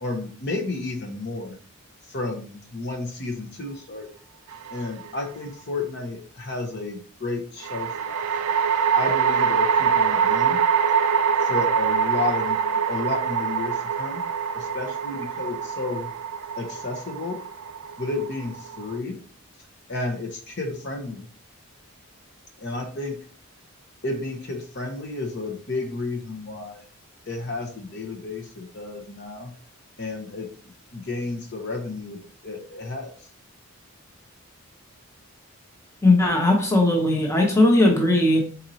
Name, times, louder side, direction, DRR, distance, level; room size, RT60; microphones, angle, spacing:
voice 1, 0.0-1.6 2.1-4.1 4.7-8.6 8.9-10.6 11.4-12.6 12.9-14.2 14.5-16.1 16.6-17.4 18.0-19.2 19.9-21.3 22.6-23.2 24.0-26.8 27.3-29.5 30.0-30.5 30.9-33.1, left 3 dB, 50° left, 3 dB, 0.7 m, -32 dB
sound 1, 4.5-5.2 7.6-19.0, right 6 dB, 80° right, 0.3 m, -24 dB
voice 2, 36.0-38.4, left 2 dB, 10° left, 1 dB, 0.7 m, -18 dB
4.3 x 4.0 x 2.7 m, 0.43 s
head